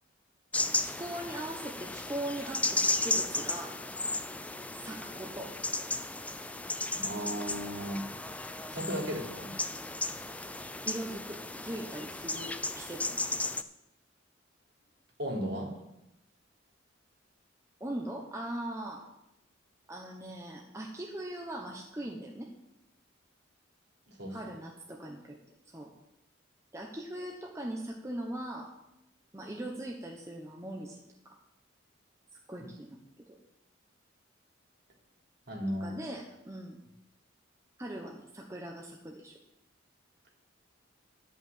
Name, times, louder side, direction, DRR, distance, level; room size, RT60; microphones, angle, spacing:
sound 1, 0.5-13.6, left 2 dB, 5° left, 0.4 m, -35 dB
voice 1, 0.8-3.8 4.8-5.5 10.8-13.4 17.8-19.0 19.9-22.5 24.3-25.4 25.7-25.9 26.7-28.7 29.3-31.4 32.5-33.0 33.3-33.4 35.8-36.8 37.8-39.3, right 1 dB, 15° right, 0 dB, 1.0 m, -40 dB
voice 2, 6.9-8.0 8.7-9.5 15.2-15.7 24.1-24.5 32.6-32.7 35.5-36.0, equal, 55° right, -1 dB, 3.1 m, -35 dB
11.0 x 5.6 x 8.6 m, 0.88 s
head